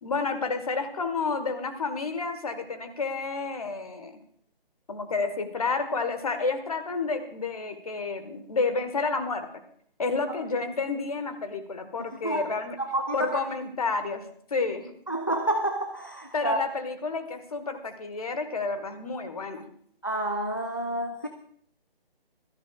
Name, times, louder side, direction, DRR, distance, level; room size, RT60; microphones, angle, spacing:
voice 1, 0.0-4.1 4.9-9.5 10.0-12.8 13.1-14.9 16.3-19.6, left 4 dB, 40° left, 8 dB, 1.5 m, -30 dB
voice 2, 12.8-13.4 15.1-16.6 20.0-21.3, right 1 dB, 20° left, 5 dB, 0.4 m, -29 dB
21.5 x 13.5 x 2.4 m, 0.64 s
figure-of-eight pair, 145°, 29 cm